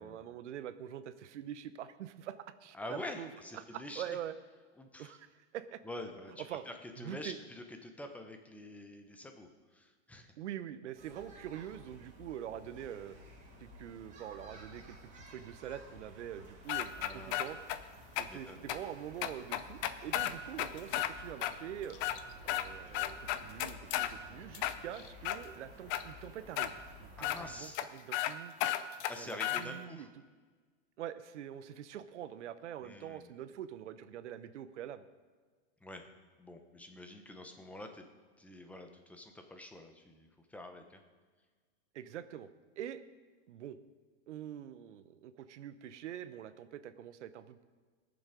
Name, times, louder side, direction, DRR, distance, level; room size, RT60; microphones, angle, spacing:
voice 1, 0.0-4.4 5.0-5.8 6.4-6.7 6.9-7.4 10.4-13.2 13.6-17.6 18.2-22.0 22.5-26.7 27.0-28.5 29.2-30.2 31.0-35.1 41.9-42.5 42.8-43.0 43.5-43.8 44.3-47.6, right 10 dB, 85° right, 13 dB, 0.9 m, -45 dB
voice 2, 2.7-4.2 4.8-5.2 5.8-10.3 16.9-17.4 18.3-18.6 27.2-27.8 29.1-30.1 32.8-33.3 35.8-36.0 36.4-38.0 38.4-41.0, left 1 dB, 5° left, 5 dB, 0.9 m, -47 dB
sound 1, 11.0-27.5, equal, 20° right, 2.9 m, -54 dB
sound 2, 16.7-17.8 18.2-18.3 18.7-18.8 19.2-21.1 21.4-21.5 21.9-22.7 22.9-24.1 24.5-25.4 25.9-26.0 26.6-26.7 27.2-27.4 27.7-27.8 28.1-28.3 28.6-29.6, left 13 dB, 35° left, 0.6 m, -33 dB
19.5 x 7.1 x 5.1 m, 1.5 s
supercardioid pair, 145°, 34 cm